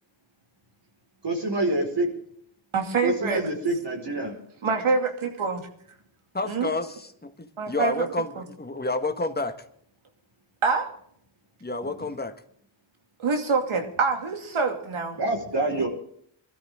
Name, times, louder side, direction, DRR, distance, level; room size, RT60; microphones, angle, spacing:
voice 1, 1.2-2.1 3.0-4.3 11.8-11.9 15.1-15.9, right 2 dB, 55° right, 1 dB, 4.9 m, -26 dB
voice 2, 2.7-3.4 4.6-5.6 6.4-6.7 7.6-8.1 8.4-8.5 10.6-10.9 13.2-15.2, right 4 dB, 80° right, 4 dB, 2.6 m, -25 dB
voice 3, 6.3-9.6 11.6-12.3 15.7-15.9, left 2 dB, 20° left, 7 dB, 1.6 m, -30 dB
21.5 x 13.5 x 3.7 m, 0.66 s
wide cardioid pair, 80°, 48 cm